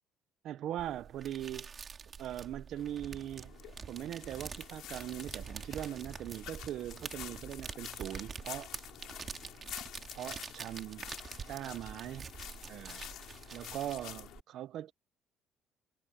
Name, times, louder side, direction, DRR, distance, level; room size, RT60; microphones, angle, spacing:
voice 1, 0.4-1.9 2.2-3.5 3.9-8.7 10.2-11.0 11.5-12.3 12.7-13.0 13.5-14.9, right 12 dB, 60° right, 0.8 m, -40 dB
sound 1, 0.8-14.4, right 6 dB, 30° right, 4.0 m, -46 dB
sound 2, 2.8-14.4, left 13 dB, 70° left, 3.1 m, -49 dB
cardioid pair, 140°, 0 cm